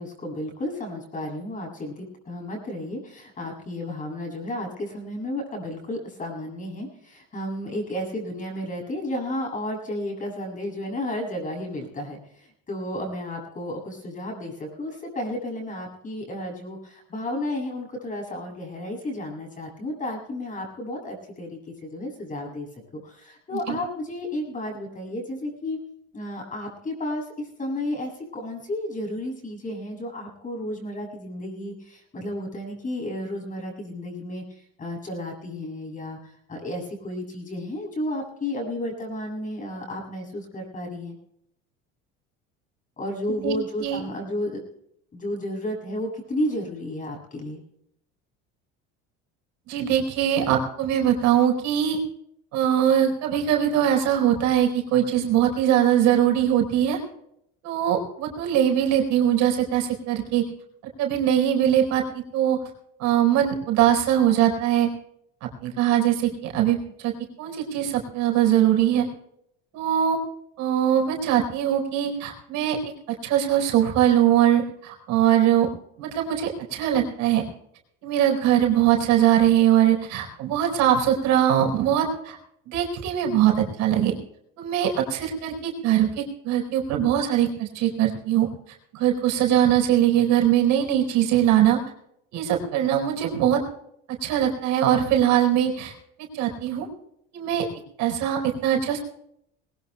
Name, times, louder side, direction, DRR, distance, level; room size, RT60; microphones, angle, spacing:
voice 1, 0.0-22.7 22.9-25.8 26.1-41.2 43.0-44.6 45.1-47.6, left 1 dB, 25° left, 1 dB, 7.6 m, -32 dB
voice 2, 43.4-44.0 49.7-52.0 52.5-57.0 57.6-60.4 61.0-62.6 63.0-64.9 65.4-67.1 67.4-69.1 69.7-70.2 70.6-72.8 73.2-75.7 76.0-77.4 78.0-82.4 82.7-84.2 84.6-88.5 88.9-91.8 92.3-93.6 94.1-95.9 96.3-96.9 97.3-97.7 98.0-99.0, right 10 dB, 65° right, 2 dB, 4.6 m, -21 dB
21.5 x 18.5 x 2.3 m, 0.73 s
supercardioid pair, 115°, 29 cm